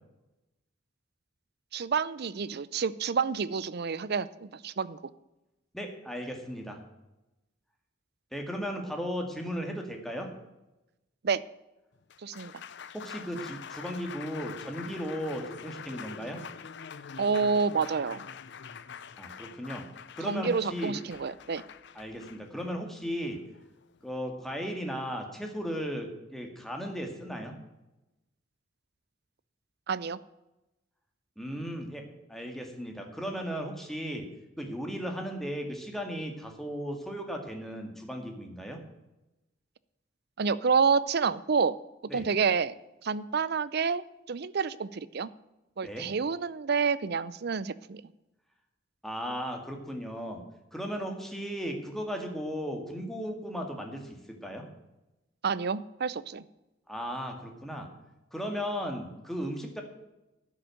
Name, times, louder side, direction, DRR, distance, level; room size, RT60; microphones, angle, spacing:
voice 1, 1.7-5.0 11.2-11.4 12.2-12.5 17.2-18.2 20.3-21.6 29.9-30.2 40.4-41.8 42.1-42.7 43.0-45.3 45.8-48.0 55.4-56.4, right 5 dB, 55° right, 17 dB, 0.5 m, -28 dB
voice 2, 5.7-6.8 8.3-10.3 12.9-16.4 19.2-19.9 20.2-21.0 21.9-23.4 24.0-27.5 31.4-32.0 32.3-34.2 34.6-38.8 42.1-42.3 45.8-46.1 49.0-50.4 50.7-54.0 54.4-54.6 56.9-57.9 58.3-59.8, equal, ahead, 2 dB, 2.0 m, -36 dB
Applause, 11.9-24.2, left 7 dB, 65° left, 0.6 m, -45 dB
11.5 x 6.4 x 9.0 m, 0.97 s
head